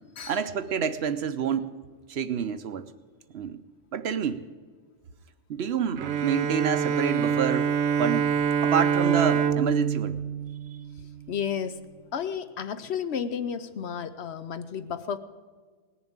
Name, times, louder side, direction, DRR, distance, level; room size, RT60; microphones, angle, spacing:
voice 1, 0.3-1.7 2.1-2.8 3.3-3.6 3.9-4.4 5.5-7.7 8.0-8.3 8.6-10.2, right 7 dB, 60° right, 11 dB, 0.9 m, -28 dB
Bowed string instrument, 6.0-11.4, right 7 dB, 90° right, 1.1 m, -26 dB
voice 2, 11.3-11.8 12.1-15.2, left 7 dB, 60° left, 11 dB, 0.9 m, -32 dB
18.5 x 7.1 x 8.7 m, 1.5 s
omnidirectional pair, 1.3 m